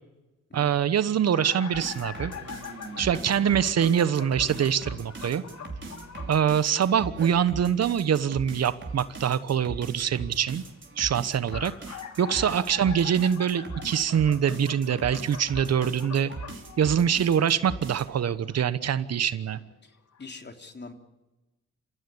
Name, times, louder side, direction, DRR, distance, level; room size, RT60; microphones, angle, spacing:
voice 1, 0.5-2.3 3.0-5.4 6.3-10.6 11.0-16.3 16.8-19.6, right 8 dB, 60° right, 15 dB, 1.1 m, -24 dB
sound 1, 1.3-6.4 11.2-17.4 18.5-18.6 19.7-19.8 20.1-20.2, left 7 dB, 65° left, 2.5 m, -43 dB
sound 2, 1.7-18.2, right 3 dB, 40° right, 5.3 m, -40 dB
voice 2, 19.8-20.9, left 4 dB, 35° left, 5 dB, 3.3 m, -44 dB
28.0 x 15.5 x 9.8 m, 1.1 s
supercardioid pair, 60°, 29 cm